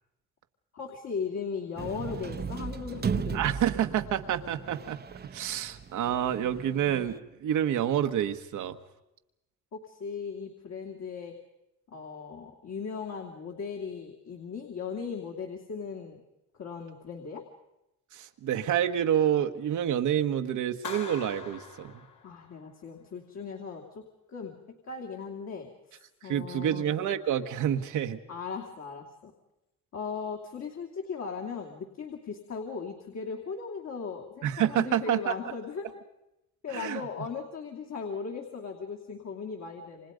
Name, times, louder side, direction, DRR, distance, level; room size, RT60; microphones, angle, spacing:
voice 1, 0.7-3.4 9.7-11.4 11.9-16.2 16.6-17.4 22.2-26.9 28.3-29.3 29.9-35.9 36.6-40.1, left 5 dB, 60° left, 1 dB, 2.9 m, -38 dB
sound 1, 1.8-7.2, right 6 dB, 35° right, 0.9 m, -36 dB
voice 2, 3.3-5.0 5.3-8.8 18.1-22.0 26.2-28.2 34.4-35.3 36.7-37.0, right 10 dB, 75° right, 7 dB, 1.5 m, -28 dB
Clapping, 20.8-22.7, left 6 dB, 80° left, 2.8 m, -42 dB
29.0 x 25.5 x 5.2 m, 0.91 s
cardioid pair, 90°, 30 cm